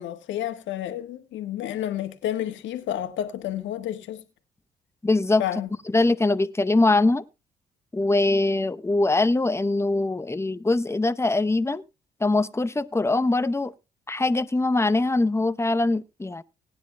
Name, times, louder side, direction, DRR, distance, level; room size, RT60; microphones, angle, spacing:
voice 1, 0.0-4.2 5.4-5.7, left 11 dB, 80° left, 1.5 m, -30 dB
voice 2, 5.0-5.4 5.9-7.2 7.9-11.8 12.2-13.7 14.1-16.4, left 2 dB, 15° left, 0.8 m, -22 dB
19.0 x 9.7 x 2.2 m
supercardioid pair, 55°, 19 cm